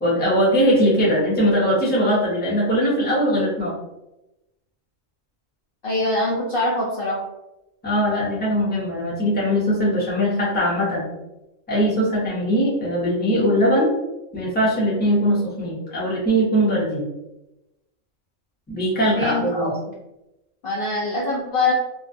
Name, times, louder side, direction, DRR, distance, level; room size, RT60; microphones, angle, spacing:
voice 1, 0.0-3.7 7.8-11.1 11.7-13.9 14.3-17.1 18.7-19.7, equal, 10° left, -7 dB, 0.6 m, -20 dB
voice 2, 5.8-7.2 19.1-19.7 20.6-21.7, left 2 dB, 60° left, -5 dB, 0.6 m, -23 dB
2.4 x 2.3 x 2.5 m, 0.95 s
omnidirectional pair, 1.4 m